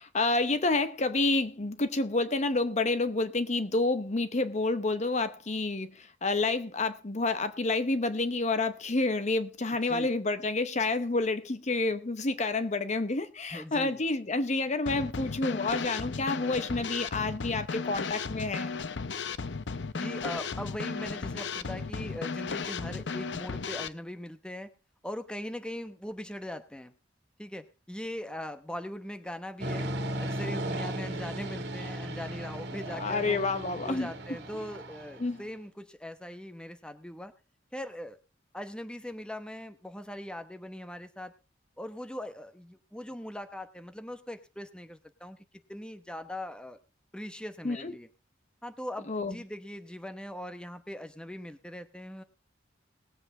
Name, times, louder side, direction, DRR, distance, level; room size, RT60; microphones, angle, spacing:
voice 1, 0.0-18.7 32.9-34.1 35.2-35.4 47.6-47.9 49.1-49.4, left 3 dB, 40° left, 0.8 m, -29 dB
voice 2, 9.9-10.2 13.5-14.0 19.9-24.7 25.0-26.9 27.4-29.9 30.2-33.4 33.8-37.3 37.7-38.2 38.5-41.3 41.8-45.4 45.7-46.8 47.1-48.1 48.6-52.2, left 1 dB, 5° left, 0.9 m, -40 dB
Drum kit / Snare drum, 14.9-23.9, left 4 dB, 65° left, 0.7 m, -35 dB
sound 1, 29.6-35.4, right 1 dB, 60° right, 2.1 m, -36 dB
19.5 x 7.9 x 3.8 m
head